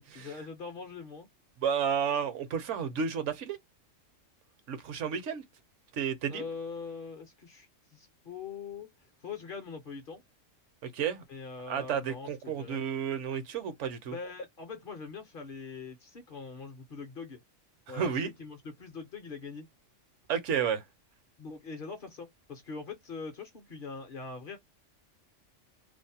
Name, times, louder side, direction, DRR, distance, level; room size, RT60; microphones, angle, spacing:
voice 1, 0.1-1.3 6.3-8.9 9.2-10.2 11.3-12.8 14.1-17.4 17.9-19.7 21.4-24.6, left 4 dB, 55° left, 0.7 m, -42 dB
voice 2, 1.6-3.6 4.7-5.4 5.9-6.4 10.8-11.2 11.7-14.1 17.9-18.3 20.3-20.8, right 7 dB, 70° right, 0.9 m, -31 dB
2.5 x 2.0 x 2.6 m
omnidirectional pair, 1.3 m